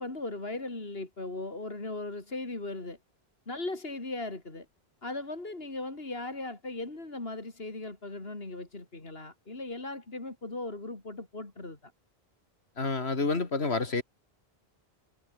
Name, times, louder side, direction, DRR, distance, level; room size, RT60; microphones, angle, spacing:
voice 1, 0.0-3.0 3.5-4.7 5.0-11.9, left 2 dB, 70° left, 3.9 m, -38 dB
voice 2, 12.8-14.0, left 3 dB, 85° left, 2.7 m, -28 dB
omnidirectional pair, 1.1 m